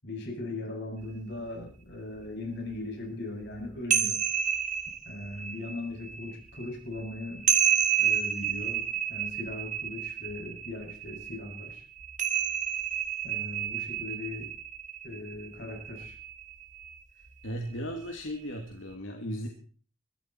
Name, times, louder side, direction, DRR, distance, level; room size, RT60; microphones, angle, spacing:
voice 1, 0.0-4.2 5.0-7.5 8.0-11.8 13.2-14.5 15.0-16.2, left 2 dB, 65° left, 1 dB, 7.8 m, -39 dB
sound 1, 1.0-1.1 1.7-1.8 2.2-2.3 3.4-16.9, right 9 dB, 40° right, 1.7 m, -31 dB
voice 2, 17.4-19.5, equal, 85° left, 2 dB, 2.5 m, -36 dB
23.0 x 13.0 x 4.6 m, 0.40 s
head